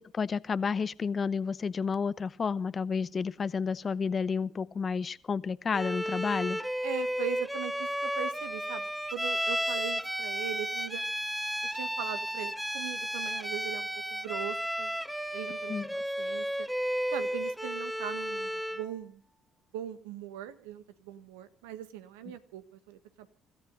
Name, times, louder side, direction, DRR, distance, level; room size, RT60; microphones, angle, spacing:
voice 1, 0.1-6.6 15.7-15.9, left 5 dB, 40° left, 0.8 m, -31 dB
Bowed string instrument, 5.7-18.9, equal, 5° right, 0.8 m, -33 dB
voice 2, 6.8-11.0 11.6-14.9 15.3-16.7 17.1-19.2 19.7-23.3, right 10 dB, 90° right, 1.4 m, -40 dB
25.5 x 14.0 x 4.0 m
supercardioid pair, 70°, 0 cm